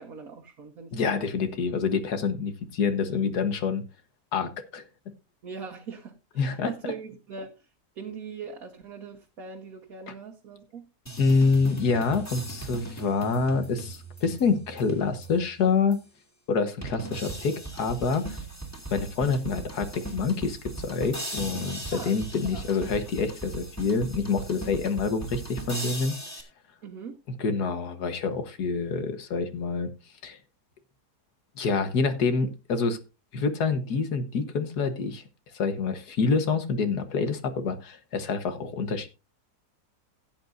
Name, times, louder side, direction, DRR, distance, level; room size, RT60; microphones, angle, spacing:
voice 1, 0.0-1.3 5.4-7.7 7.9-10.9 21.9-22.2 22.5-22.6 26.8-27.2, right 5 dB, 65° right, 1.6 m, -41 dB
voice 2, 0.9-3.8 4.3-4.8 6.4-6.7 11.2-16.0 16.5-18.4 18.9-26.2 27.4-29.9 30.2-30.4 31.6-33.0 33.3-35.2 35.5-39.1, left 4 dB, 80° left, 1.8 m, -27 dB
sound 1, 11.1-15.5 15.9-16.0 16.8-26.4, right 2 dB, 10° left, 2.3 m, -38 dB
16.5 x 8.9 x 2.6 m
omnidirectional pair, 1.7 m